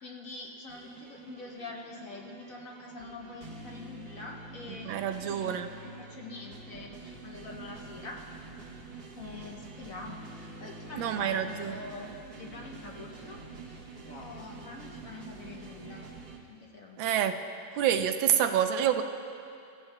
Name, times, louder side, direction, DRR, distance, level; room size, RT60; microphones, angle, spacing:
voice 1, 0.0-8.2 9.1-13.4 13.7-16.1 16.5-17.0, left 3 dB, 55° left, 0 dB, 1.0 m, -45 dB
sound 1, 0.7-16.4, right 3 dB, 60° right, 1.4 m, -47 dB
voice 2, 4.9-5.7 11.0-11.8 17.0-17.4 17.8-19.0, right 9 dB, 85° right, 7 dB, 1.4 m, -27 dB
16.0 x 14.5 x 2.2 m, 2.5 s
omnidirectional pair, 2.1 m